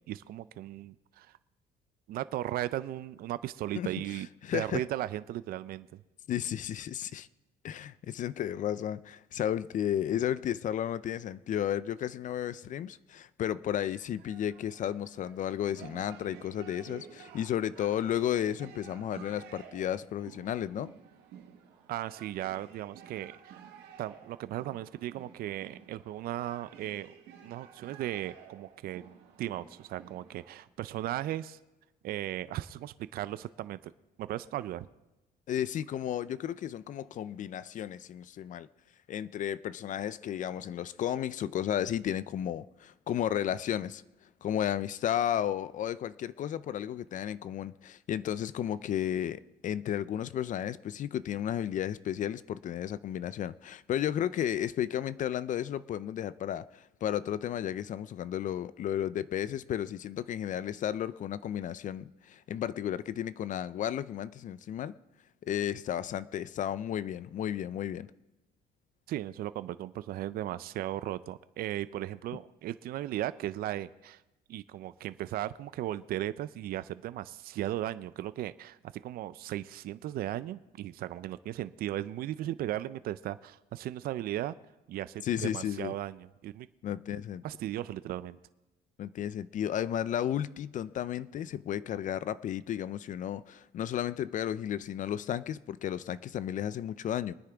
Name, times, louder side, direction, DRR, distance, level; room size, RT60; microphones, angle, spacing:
voice 1, 0.1-1.3 2.1-4.3 4.5-6.0 21.9-23.6 24.0-27.1 27.4-29.0 29.4-31.6 32.0-33.9 34.2-34.9 69.1-74.2 74.5-78.8 79.0-84.5 84.9-86.7 87.1-88.4, right 13 dB, 65° right, 0.5 m, -36 dB
voice 2, 3.8-4.8 6.3-7.3 7.6-20.9 35.5-38.7 39.1-44.0 44.4-64.9 65.5-68.1 85.2-85.9 86.8-87.4 89.0-97.3, left 10 dB, 50° left, 0.4 m, -33 dB
sound 1, 13.7-30.6, right 9 dB, 85° right, 1.6 m, -52 dB
22.5 x 9.7 x 3.5 m
cardioid pair, 110°, 17 cm